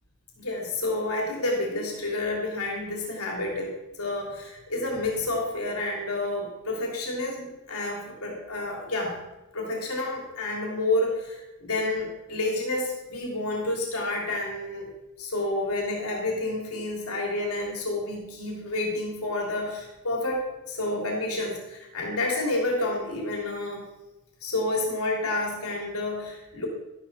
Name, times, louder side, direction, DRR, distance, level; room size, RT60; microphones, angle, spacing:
voice 1, 0.4-9.2 9.5-14.9 15.2-23.9 24.4-26.7, left 2 dB, 75° left, -1 dB, 3.2 m, -29 dB
12.5 x 12.0 x 4.2 m, 1.0 s
head